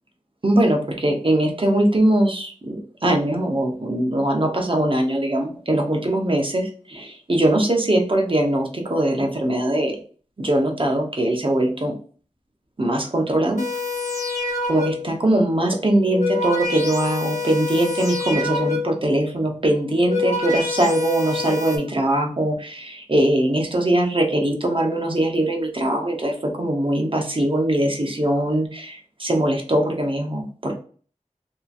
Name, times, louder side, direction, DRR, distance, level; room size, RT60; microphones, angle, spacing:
voice 1, 0.4-10.0 10.4-11.9 12.8-13.6 14.7-30.7, right 1 dB, 40° right, 1 dB, 0.8 m, -21 dB
sound 1, 13.6-15.2 15.9-19.1 19.8-21.8, left 3 dB, 65° left, 1.3 m, -27 dB
2.8 x 2.6 x 2.4 m, 0.42 s
wide cardioid pair, 50°, 13 cm